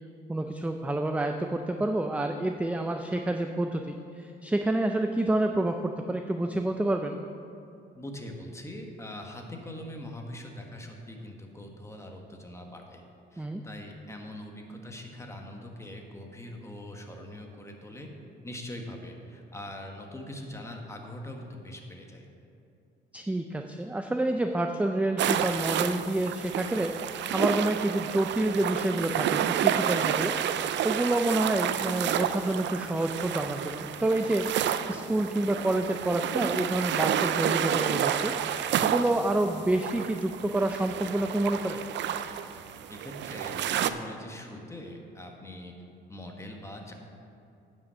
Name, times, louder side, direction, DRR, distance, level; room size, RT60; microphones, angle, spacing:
voice 1, 0.3-7.2 13.4-13.6 23.1-30.3 30.8-34.5 34.9-41.8, right 1 dB, 5° right, 5 dB, 0.4 m, -28 dB
voice 2, 7.9-13.0 13.3-18.1 18.4-22.3 42.9-45.7 46.1-46.9, left 1 dB, 15° left, 2 dB, 1.3 m, -42 dB
sound 1, 25.2-43.9, right 9 dB, 65° right, 0.5 m, -30 dB
9.3 x 5.4 x 6.9 m, 2.6 s
cardioid pair, 90°, 20 cm